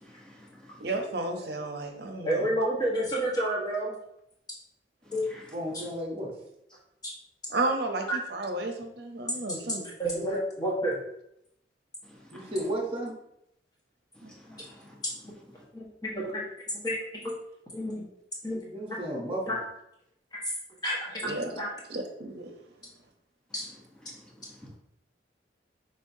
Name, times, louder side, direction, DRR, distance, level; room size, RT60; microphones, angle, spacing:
voice 1, 0.0-0.8 5.1-5.5 12.4-12.5 14.3-15.0 24.6-24.7, left 3 dB, 5° left, -3 dB, 0.9 m, -38 dB
voice 2, 0.8-2.4 7.5-8.0 8.3-9.8 14.2-14.3 21.2-21.5 21.9-22.5, right 2 dB, 65° right, 4 dB, 0.8 m, -32 dB
voice 3, 2.2-3.9 5.7-5.8 8.1-8.2 9.6-9.7 10.0-10.9 15.2-15.3 15.7-16.5 16.7-17.4 17.7-18.0 18.4-18.6 19.5-19.6 20.3-20.4 20.8-21.7 23.5-23.6, right 1 dB, 20° left, -5 dB, 1.3 m, -30 dB
voice 4, 5.5-6.3 10.2-10.4 12.3-13.1 18.5-19.6, right 1 dB, 30° right, -1 dB, 0.9 m, -34 dB
5.5 x 3.4 x 2.7 m, 0.79 s
head